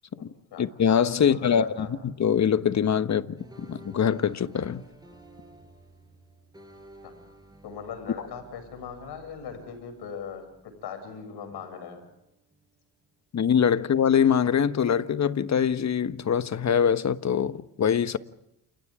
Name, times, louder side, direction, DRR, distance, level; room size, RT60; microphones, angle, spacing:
voice 1, 0.6-4.8 13.3-18.2, left 8 dB, 40° left, 1.3 m, -23 dB
voice 2, 1.2-1.9 7.0-7.1 7.6-10.4 10.8-12.0, left 6 dB, 65° left, 7.4 m, -39 dB
sound 1, 3.4-11.3 11.5-13.1 13.5-15.1, right 1 dB, 10° right, 7.2 m, -54 dB
29.5 x 29.0 x 3.7 m
supercardioid pair, 70°, 43 cm